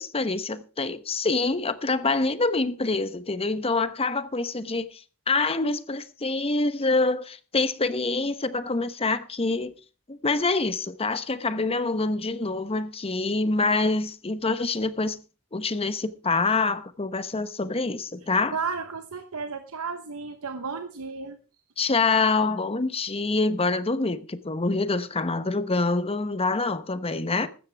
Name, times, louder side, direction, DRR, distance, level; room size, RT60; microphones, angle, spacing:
voice 1, 0.0-9.7 10.1-15.2 15.5-18.6 21.8-27.5, left 3 dB, 25° left, 1.0 m, -26 dB
voice 2, 18.5-21.4, right 5 dB, 70° right, 1.0 m, -33 dB
15.0 x 13.0 x 3.4 m
head